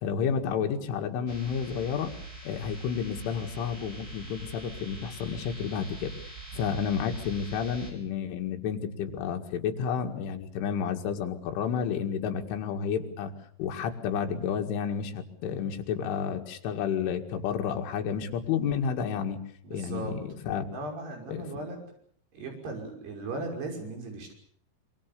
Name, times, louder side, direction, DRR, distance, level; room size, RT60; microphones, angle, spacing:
voice 1, 0.0-2.1 2.4-6.2 6.5-13.3 13.6-19.4 19.7-20.7 21.3-21.7, left 7 dB, 80° left, 4 dB, 4.5 m, -31 dB
sound 1, 1.3-7.9, right 2 dB, 20° right, 5.8 m, -43 dB
voice 2, 19.6-20.1 20.7-21.8 22.3-24.3, right 2 dB, 55° right, 2 dB, 7.8 m, -37 dB
26.0 x 24.5 x 6.8 m, 0.62 s
omnidirectional pair, 5.5 m